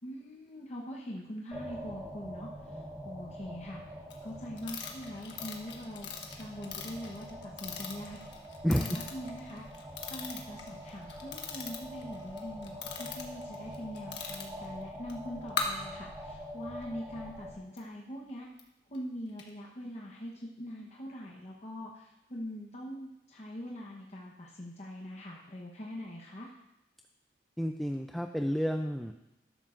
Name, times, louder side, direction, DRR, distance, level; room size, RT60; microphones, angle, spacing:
voice 1, 0.0-3.8 4.2-6.1 6.4-8.2 8.7-9.6 10.1-18.5 18.9-26.5, equal, 40° left, -3 dB, 1.0 m, -43 dB
sound 1, 1.5-17.6, equal, 15° right, 1.5 m, -45 dB
sound 2, 4.1-4.2 4.6-14.7 15.1-15.2 15.4-15.6 17.8-17.9 18.6-18.7 18.9-19.0 19.4-19.5, left 6 dB, 75° left, 1.4 m, -40 dB
voice 2, 8.6-9.0 27.6-29.1, equal, ahead, 4 dB, 0.4 m, -30 dB
13.0 x 12.0 x 2.5 m, 0.91 s
head